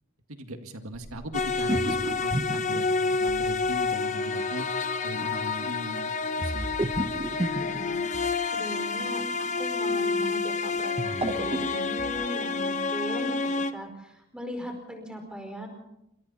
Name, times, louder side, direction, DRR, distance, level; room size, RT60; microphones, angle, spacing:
voice 1, 0.3-4.7 5.0-6.7, right 1 dB, 85° right, 6 dB, 2.1 m, -39 dB
sound 1, 0.9-3.8 6.4-8.4 10.8-12.2, right 1 dB, 25° right, 1.0 m, -33 dB
sound 2, 1.3-13.7, left 4 dB, 35° left, 1.2 m, -29 dB
voice 2, 7.3-8.0 8.5-13.4 13.7-15.7, equal, 5° right, 4 dB, 4.9 m, -39 dB
28.0 x 26.0 x 4.2 m, 0.83 s
head